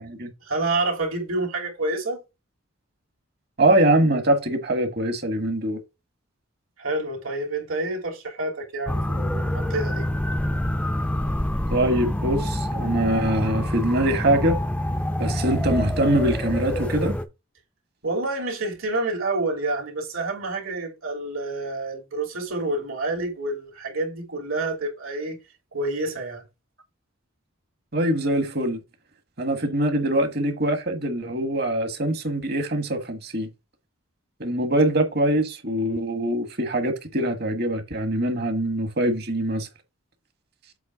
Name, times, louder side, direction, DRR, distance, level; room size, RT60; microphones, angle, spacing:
voice 1, 0.4-2.2 6.8-10.1 18.0-25.4 25.7-26.4, right 2 dB, 75° right, 3.0 m, -28 dB
voice 2, 3.6-5.8 11.7-14.6 15.2-17.2 27.9-28.8 29.4-33.5 34.4-39.7, right 1 dB, 45° right, 1.4 m, -23 dB
sound 1, 8.9-17.2, left 1 dB, 5° left, 0.5 m, -26 dB
7.9 x 3.2 x 5.9 m
head